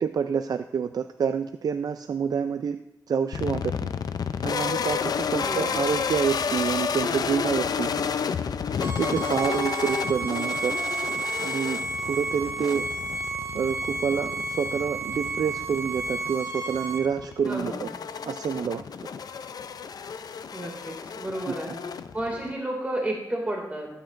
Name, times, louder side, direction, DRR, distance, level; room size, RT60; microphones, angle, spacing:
voice 1, 0.0-2.8 3.1-3.9 4.4-8.1 9.0-10.7 11.4-11.8 12.1-12.9 13.5-17.9 18.2-18.8 21.5-21.6, right 6 dB, 80° right, 9 dB, 0.4 m, -28 dB
sound 1, 3.3-22.5, left 6 dB, 80° left, 0.4 m, -31 dB
voice 2, 5.4-5.8 17.5-17.9 20.5-21.8 22.1-23.9, right 1 dB, 25° right, -1 dB, 2.2 m, -32 dB
Bowed string instrument, 8.8-17.0, right 3 dB, 50° right, 3.2 m, -32 dB
15.0 x 9.2 x 2.5 m, 0.97 s
wide cardioid pair, 75°, 7 cm